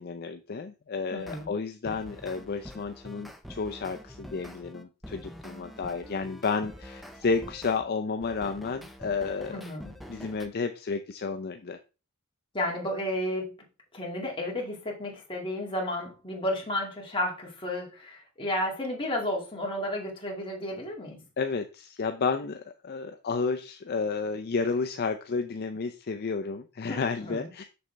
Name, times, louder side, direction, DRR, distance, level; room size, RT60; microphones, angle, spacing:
voice 1, 0.0-9.6 10.1-11.8 21.4-27.6, left 4 dB, 45° left, 0.5 m, -31 dB
voice 2, 1.1-1.5 9.5-10.0 12.5-13.6 13.9-21.3 26.9-27.5, left 1 dB, 25° left, 2.1 m, -32 dB
sound 1, 1.2-1.5 1.8-7.8 8.2-10.5, equal, ahead, 0.6 m, -46 dB
6.9 x 6.3 x 3.3 m
head